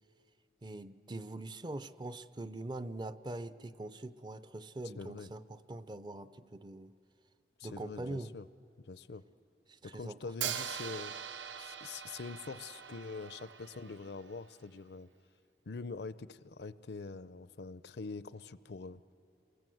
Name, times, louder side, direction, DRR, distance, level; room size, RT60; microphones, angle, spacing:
voice 1, 0.6-6.9 7.6-8.3 9.7-10.2 10.4-10.5, right 2 dB, 25° right, 13 dB, 0.5 m, -43 dB
voice 2, 5.0-5.3 7.6-8.5 8.9-9.2 9.8-11.1 11.6-15.1 15.7-19.0, left 4 dB, 65° left, 15 dB, 0.6 m, -44 dB
Hi-hat, 10.4-14.4, right 8 dB, 90° right, 0.8 m, -42 dB
28.5 x 23.0 x 7.8 m, 2.6 s
head